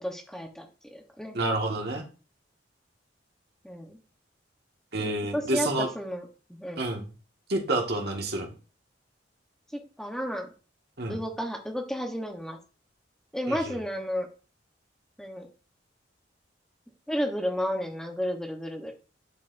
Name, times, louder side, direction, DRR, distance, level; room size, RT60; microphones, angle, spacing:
voice 1, 0.0-1.4 3.6-4.0 5.0-6.8 9.7-10.5 11.1-12.6 13.3-14.3 15.2-15.5 17.1-18.9, equal, 5° left, 2 dB, 0.9 m, -32 dB
voice 2, 1.3-2.0 4.9-5.9 6.8-7.0 7.5-8.5 11.0-11.2 13.5-13.8, right 2 dB, 60° right, 1 dB, 1.6 m, -29 dB
10.5 x 5.0 x 2.6 m, 0.35 s
head